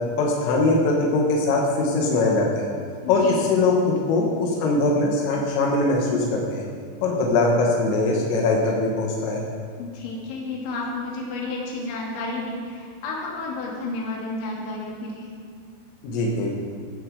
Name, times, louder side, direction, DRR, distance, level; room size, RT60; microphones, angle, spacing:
voice 1, 0.2-2.7 3.1-6.7 7.0-9.4 16.0-16.5, left 2 dB, 90° left, -2 dB, 4.3 m, -21 dB
voice 2, 3.0-3.4 9.8-15.3, left 2 dB, 70° left, -2 dB, 4.6 m, -31 dB
14.5 x 13.5 x 5.0 m, 2.1 s
omnidirectional pair, 5.7 m